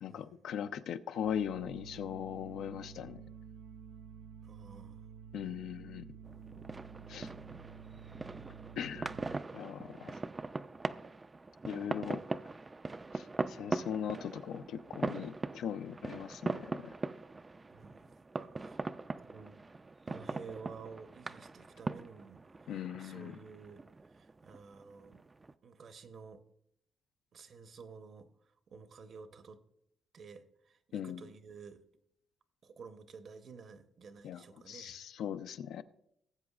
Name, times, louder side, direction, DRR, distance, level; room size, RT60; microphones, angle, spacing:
voice 1, 0.0-3.2 5.3-6.1 7.1-7.3 8.8-9.1 9.5-10.1 11.6-12.2 13.1-16.9 22.7-23.4 30.9-31.2 34.2-35.8, left 9 dB, 75° left, 0.5 m, -39 dB
sound 1, 1.2-9.4, right 7 dB, 75° right, 0.5 m, -50 dB
voice 2, 4.4-5.0 17.7-18.1 18.3-18.8 19.2-19.6 20.1-25.2 25.6-26.4 27.3-28.3 28.7-29.6 30.1-31.8 32.6-35.0, right 5 dB, 50° right, 0.8 m, -52 dB
sound 2, 6.2-25.5, right 3 dB, 20° right, 0.3 m, -41 dB
18.5 x 7.7 x 2.4 m
cardioid pair, 115°, 0 cm